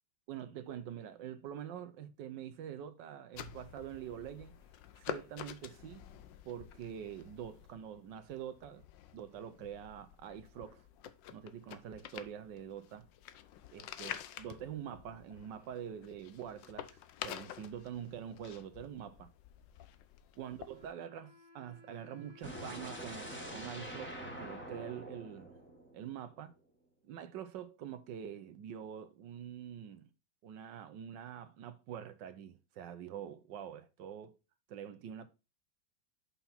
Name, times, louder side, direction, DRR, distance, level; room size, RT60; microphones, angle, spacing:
voice 1, 0.3-4.6 4.9-6.0 6.4-8.8 9.1-10.8 11.3-13.0 13.7-19.3 20.4-25.5 25.9-26.5 27.0-30.1 30.4-34.4 34.7-35.3, right 9 dB, 80° right, 1.4 m, -45 dB
sound 1, 3.3-20.9, left 11 dB, 90° left, 1.4 m, -49 dB
Wind instrument woodwind instrument, 20.5-26.0, left 1 dB, 25° right, 1.3 m, -61 dB
sound 2, 22.4-26.4, equal, 5° left, 1.5 m, -45 dB
7.0 x 5.7 x 4.2 m
omnidirectional pair, 1.9 m